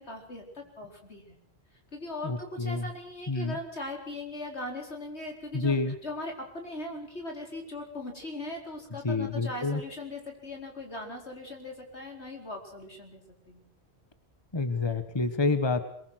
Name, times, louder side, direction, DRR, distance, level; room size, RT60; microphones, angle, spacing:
voice 1, 0.0-1.4 1.9-13.6, left 2 dB, 75° left, 2 dB, 4.8 m, -39 dB
voice 2, 2.2-2.9 3.3-3.6 5.5-5.9 9.0-9.8 14.5-15.8, left 3 dB, 25° left, 10 dB, 1.4 m, -28 dB
22.5 x 22.0 x 6.4 m, 0.67 s
omnidirectional pair, 1.1 m